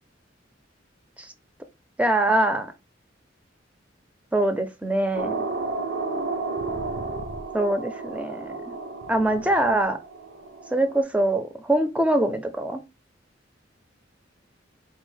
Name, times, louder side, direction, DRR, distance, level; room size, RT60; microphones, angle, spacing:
voice 1, 2.0-2.7 4.3-5.5 7.5-8.7 9.1-10.0 10.7-12.8, right 1 dB, 5° right, 0.6 m, -23 dB
sound 1, 5.1-11.0, right 3 dB, 65° right, 0.7 m, -32 dB
4.5 x 2.5 x 3.3 m
head